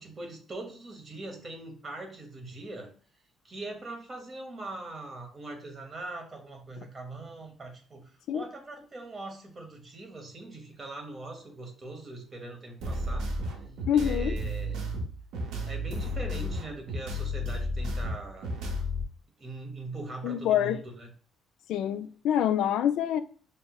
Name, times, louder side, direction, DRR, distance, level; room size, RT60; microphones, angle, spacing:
voice 1, 0.0-2.9 3.4-13.3 13.9-14.9 15.7-18.5 19.4-21.1, right 2 dB, 30° right, 1.0 m, -41 dB
sound 1, 12.8-19.0, left 1 dB, 80° right, 0.8 m, -33 dB
voice 2, 13.9-14.4 20.2-20.8 21.7-23.2, left 10 dB, 80° left, 0.3 m, -26 dB
4.9 x 2.9 x 2.3 m
cardioid pair, 120°, 0 cm